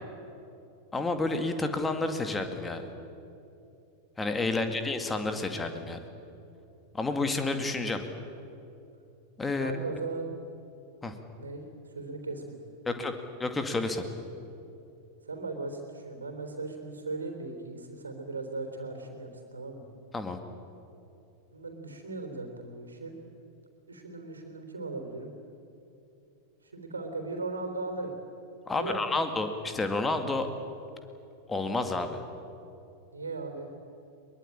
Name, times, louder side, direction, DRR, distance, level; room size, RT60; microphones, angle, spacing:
voice 1, 0.9-2.9 4.2-6.0 6.9-8.0 9.4-9.8 11.0-11.1 12.9-13.1 13.4-14.0 20.1-20.4 28.7-30.5 31.5-32.2, left 3 dB, 15° left, 7 dB, 2.2 m, -30 dB
voice 2, 9.6-10.3 11.4-12.6 12.9-13.0 15.3-19.9 21.5-23.1 23.9-25.3 26.6-28.1 28.7-29.3 33.1-33.7, right 3 dB, 75° right, 6 dB, 3.6 m, -38 dB
22.5 x 21.5 x 8.8 m, 2.8 s
figure-of-eight pair, 90°, 0 cm